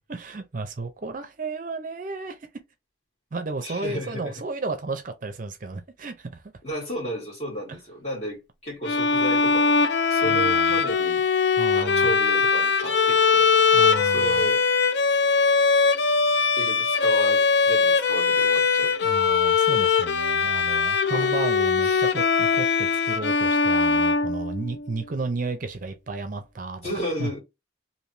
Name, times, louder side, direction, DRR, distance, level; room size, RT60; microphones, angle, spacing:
voice 1, 0.1-2.5 3.3-6.4 10.2-10.7 11.6-12.2 13.7-14.5 19.0-26.9 27.2-27.3, right 3 dB, 45° right, 0.5 m, -33 dB
voice 2, 3.6-4.3 6.6-11.2 11.7-13.5 14.0-14.6 16.6-19.5 21.1-21.3 21.8-22.0 26.8-27.4, equal, 35° left, 1.8 m, -33 dB
Bowed string instrument, 8.8-24.9, left 5 dB, 60° left, 0.4 m, -21 dB
3.3 x 2.6 x 2.7 m
head